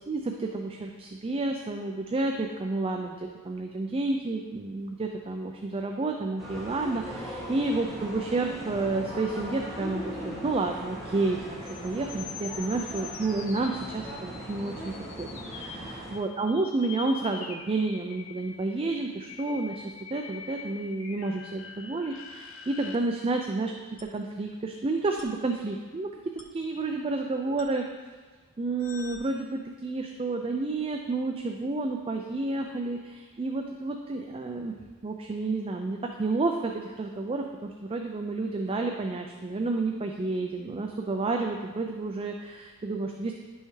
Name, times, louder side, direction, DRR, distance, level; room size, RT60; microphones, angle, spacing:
voice 1, 0.0-23.7 24.1-26.1 26.5-27.8 28.6-34.7 35.0-43.3, right 3 dB, 25° right, 3 dB, 0.4 m, -30 dB
sound 1, 6.4-16.2, right 1 dB, ahead, 1.7 m, -39 dB
sound 2, 11.6-23.0 24.0-24.1 25.2-25.3 26.4-26.5 27.6-27.7 28.8-29.2, left 6 dB, 65° left, 0.7 m, -44 dB
10.0 x 5.5 x 3.2 m, 1.4 s
head